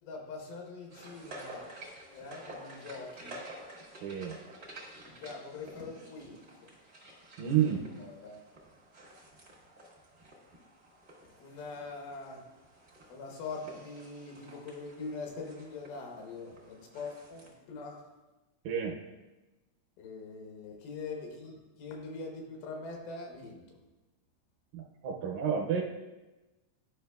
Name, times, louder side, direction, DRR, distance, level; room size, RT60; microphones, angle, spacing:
voice 1, 0.0-1.7 2.1-3.4 5.2-6.4 8.0-8.5 9.7-9.8 11.4-12.4 13.1-18.0 20.0-23.6, left 3 dB, 80° left, 1 dB, 2.8 m, -43 dB
sound 1, 0.9-17.5, right 1 dB, 60° right, 0.7 m, -51 dB
voice 2, 4.0-4.4 7.4-7.8 18.6-19.0 24.7-25.8, right 8 dB, 75° right, 0 dB, 2.2 m, -30 dB
12.0 x 5.5 x 2.3 m, 1.1 s
omnidirectional pair, 4.4 m